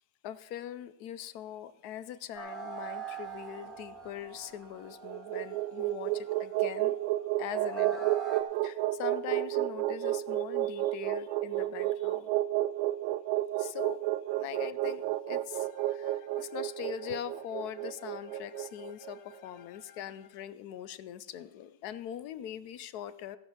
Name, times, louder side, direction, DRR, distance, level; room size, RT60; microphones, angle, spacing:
voice 1, 0.2-6.9 7.4-8.1 8.6-12.3 13.6-14.0 14.4-23.4, left 10 dB, 70° left, 14 dB, 0.9 m, -42 dB
sound 1, 2.3-8.4, right 6 dB, ahead, 2.6 m, -43 dB
sound 2, 4.9-19.2, right 15 dB, 80° right, 1.3 m, -31 dB
17.0 x 7.1 x 5.8 m, 0.96 s
omnidirectional pair, 2.1 m